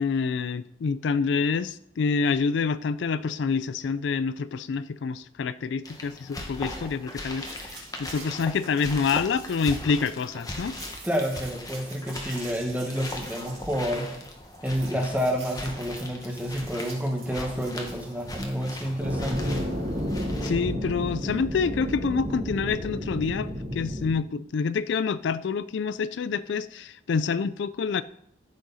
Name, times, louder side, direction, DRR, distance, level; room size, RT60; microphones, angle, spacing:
voice 1, 0.0-10.8 20.4-28.0, left 5 dB, 70° left, 0.4 m, -27 dB
sound 1, 5.8-20.5, left 1 dB, 20° left, 1.3 m, -39 dB
sound 2, 7.4-19.1, right 4 dB, 30° right, 3.5 m, -47 dB
voice 2, 11.0-14.1 14.6-19.6, equal, 10° right, 1.5 m, -29 dB
sound 3, 19.0-24.1, equal, 55° right, 3.3 m, -31 dB
14.5 x 6.4 x 4.1 m
head